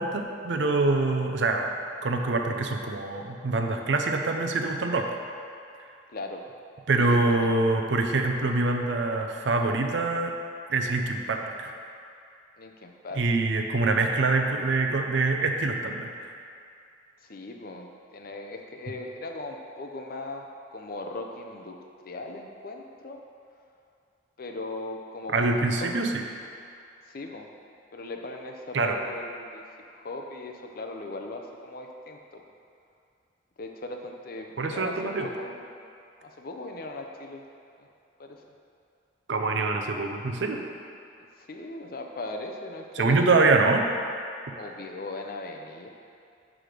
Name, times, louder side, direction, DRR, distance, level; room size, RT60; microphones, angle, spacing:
voice 1, 0.0-1.7 2.0-5.1 6.9-10.3 10.7-11.7 13.2-16.1 25.3-26.1 28.7-29.0 34.6-35.3 39.3-40.6 43.0-43.8, right 3 dB, 70° right, 3 dB, 0.6 m, -25 dB
voice 2, 6.1-6.4 7.0-7.7 12.6-13.2 17.2-23.2 24.4-25.5 25.8-25.9 27.1-27.5 27.9-32.4 33.6-35.8 36.2-37.4 37.8-37.9 38.2-38.4 41.4-43.7 44.6-45.9, left 2 dB, 50° left, 3 dB, 0.5 m, -39 dB
6.0 x 4.9 x 5.0 m, 2.4 s
head